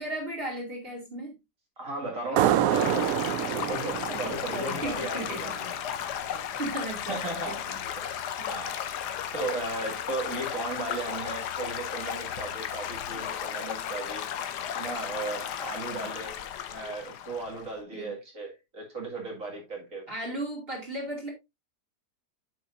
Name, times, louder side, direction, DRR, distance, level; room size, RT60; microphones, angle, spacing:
voice 1, 0.0-1.3 4.0-5.7 6.6-8.5 15.9-16.0 17.9-18.1 20.1-21.3, right 1 dB, 35° right, 2.7 m, -37 dB
voice 2, 1.8-3.1 3.5-5.5 6.2-6.5 7.1-7.7 7.9-8.2 8.5-8.8 9.3-14.3 14.7-16.4 16.7-20.1, right 2 dB, 50° right, 2.6 m, -36 dB
sound 1, 2.4-5.7, right 11 dB, 65° right, 1.0 m, -27 dB
Stream / Gurgling / Trickle dribble, 2.7-17.8, left 9 dB, 80° left, 1.4 m, -35 dB
9.1 x 7.0 x 2.6 m
omnidirectional pair, 1.8 m